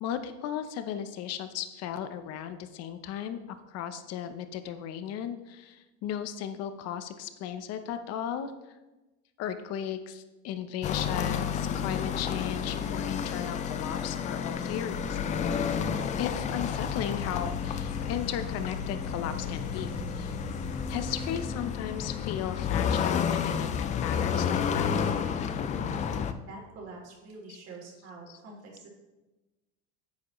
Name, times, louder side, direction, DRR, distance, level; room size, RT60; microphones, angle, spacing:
voice 1, 0.0-8.5 9.4-15.2 16.2-20.4 20.9-24.9 28.3-28.4, left 9 dB, 45° left, 9 dB, 0.8 m, -36 dB
sound 1, 10.8-26.3, left 7 dB, 20° left, 0.3 m, -31 dB
sound 2, 14.6-21.5, left 2 dB, 80° left, 2.1 m, -41 dB
voice 2, 26.4-28.9, right 3 dB, 45° right, -2 dB, 3.3 m, -46 dB
9.5 x 8.5 x 3.1 m, 1.1 s
cardioid pair, 145°, 35 cm